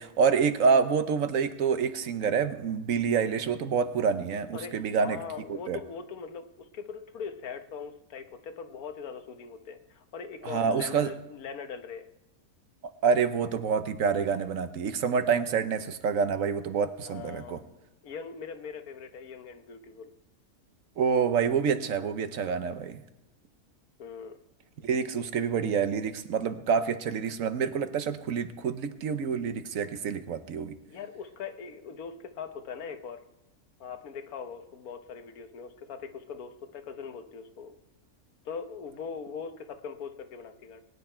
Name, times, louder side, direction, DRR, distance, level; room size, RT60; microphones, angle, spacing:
voice 1, 0.0-5.2 5.7-5.8 10.4-11.1 13.0-17.6 21.0-23.0 24.8-30.8, right 6 dB, 65° right, 10 dB, 1.2 m, -27 dB
voice 2, 4.5-12.1 17.0-17.6 18.0-20.1 24.0-24.4 30.9-33.2 33.8-37.8 38.4-40.8, left 6 dB, 80° left, 8 dB, 1.5 m, -41 dB
21.5 x 9.6 x 4.4 m, 0.94 s
omnidirectional pair, 1.5 m